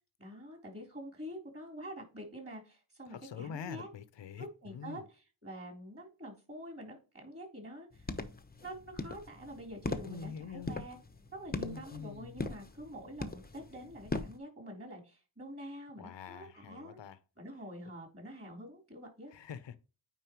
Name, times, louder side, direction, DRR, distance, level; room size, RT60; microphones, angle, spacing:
voice 1, 0.2-3.9 4.4-5.0 5.4-8.1 8.6-11.0 11.3-17.0 17.4-19.3, equal, 25° right, 3.7 m, -46 dB
voice 2, 3.1-5.0 10.0-10.9 11.5-12.4 16.0-17.2 19.3-19.8, left 7 dB, 60° left, 0.8 m, -45 dB
sound 1, 7.9-14.4, left 2 dB, 20° left, 0.9 m, -41 dB
9.2 x 4.4 x 3.1 m
wide cardioid pair, 90°, 50 cm